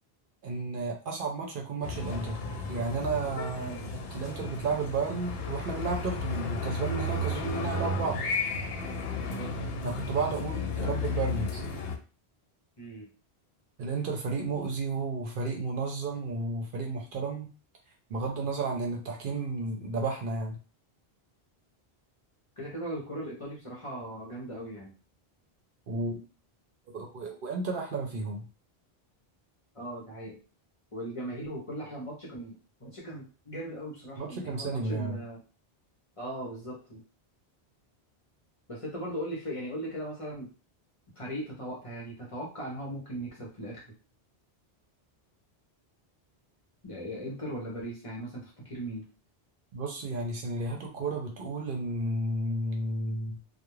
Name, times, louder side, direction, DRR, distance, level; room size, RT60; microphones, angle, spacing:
voice 1, 0.4-2.4 2.7-3.7 4.1-8.2 9.8-11.7 13.8-17.5 18.1-20.6 25.9-26.2 26.9-28.4 34.2-35.2 49.7-53.3, right 3 dB, 65° right, 1 dB, 0.7 m, -32 dB
sound 1, 1.8-12.0, left 3 dB, 70° left, 0.8 m, -33 dB
voice 2, 3.5-3.9 9.2-9.5 12.8-13.1 22.6-24.9 29.7-30.4 30.9-35.4 36.2-37.0 38.7-40.5 41.2-43.8 46.8-49.1, right 1 dB, 35° left, -3 dB, 0.7 m, -38 dB
2.3 x 2.1 x 3.0 m, 0.35 s
omnidirectional pair, 1.1 m